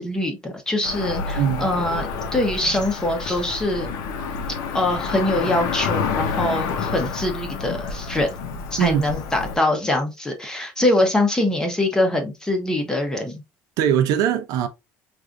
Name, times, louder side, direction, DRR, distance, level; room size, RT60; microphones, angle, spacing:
voice 1, 0.0-3.9 4.7-8.3 8.7-13.4, left 1 dB, 10° left, 0.8 m, -23 dB
Cricket / Motor vehicle (road), 0.8-9.6, left 5 dB, 85° left, 0.8 m, -28 dB
voice 2, 1.4-1.7 8.8-9.0 13.8-14.7, right 9 dB, 70° right, 0.6 m, -21 dB
4.7 x 2.5 x 2.5 m
cardioid pair, 155°, 6 cm